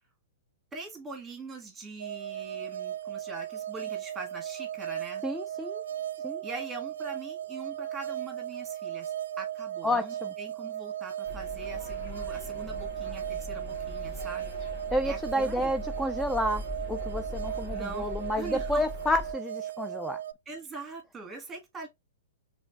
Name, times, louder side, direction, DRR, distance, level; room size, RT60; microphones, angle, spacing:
voice 1, 0.7-5.2 6.4-14.5 15.0-15.7 17.7-18.0 18.4-18.8 20.4-21.9, right 3 dB, 15° right, 1.6 m, -42 dB
sound 1, 2.0-20.3, right 11 dB, 75° right, 0.3 m, -36 dB
voice 2, 5.2-5.8 6.2-6.4 9.8-10.3 14.9-16.6 16.9-20.2, left 1 dB, 5° left, 0.3 m, -30 dB
sound 2, 11.3-19.3, left 1 dB, 35° left, 1.9 m, -40 dB
5.0 x 3.3 x 2.3 m
hypercardioid pair, 125°, 0 cm